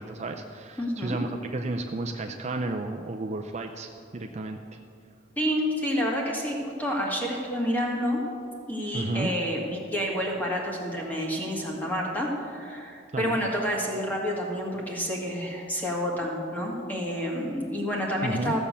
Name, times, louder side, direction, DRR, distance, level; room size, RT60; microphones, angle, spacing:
voice 1, 0.0-4.6 8.9-9.3 13.1-13.4 18.2-18.5, right 2 dB, 35° right, 4 dB, 0.5 m, -32 dB
voice 2, 0.8-1.2 5.4-8.2 8.7-18.6, equal, 10° left, -2 dB, 2.0 m, -29 dB
14.5 x 7.2 x 6.8 m, 2.4 s
head